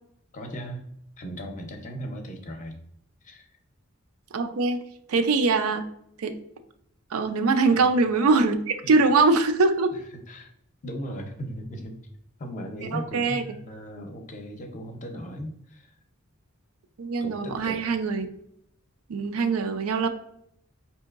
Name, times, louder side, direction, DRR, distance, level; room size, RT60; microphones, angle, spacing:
voice 1, 0.3-0.9 1.2-2.8 3.2-3.5 7.7-7.8 8.8-8.9 9.9-10.0 10.3-10.5 10.8-12.0 12.4-15.9 17.2-17.8, equal, 35° left, 4 dB, 0.6 m, -37 dB
voice 2, 4.3-4.8 5.1-5.9 6.2-6.4 7.1-9.9 12.9-13.4 17.0-18.3 19.1-20.1, right 3 dB, 90° right, 7 dB, 0.4 m, -22 dB
4.5 x 2.8 x 2.4 m, 0.72 s
head